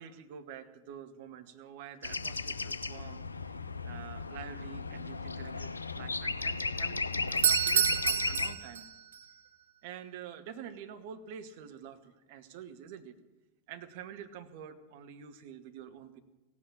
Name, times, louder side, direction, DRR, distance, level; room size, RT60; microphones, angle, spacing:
voice 1, 0.0-3.6 3.8-8.8 9.8-13.2 13.7-16.2, right 8 dB, 50° right, 8 dB, 1.3 m, -47 dB
sound 1, 2.0-8.5, left 3 dB, 80° left, 0.5 m, -35 dB
Doorbell, 7.3-9.2, right 9 dB, 65° right, 0.6 m, -28 dB
16.0 x 8.5 x 8.8 m, 1.2 s
figure-of-eight pair, 90°, 0 cm